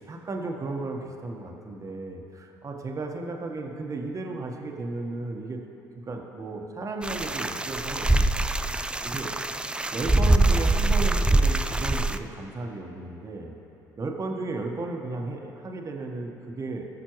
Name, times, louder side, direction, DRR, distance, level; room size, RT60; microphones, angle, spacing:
voice 1, 0.0-5.6 6.0-8.2 9.0-9.3 9.9-13.5 14.0-16.8, right 2 dB, 35° right, 2 dB, 1.3 m, -34 dB
sound 1, 7.0-12.2, right 2 dB, 10° right, 0.4 m, -23 dB
18.5 x 6.6 x 3.1 m, 3.0 s
hypercardioid pair, 60°, 10 cm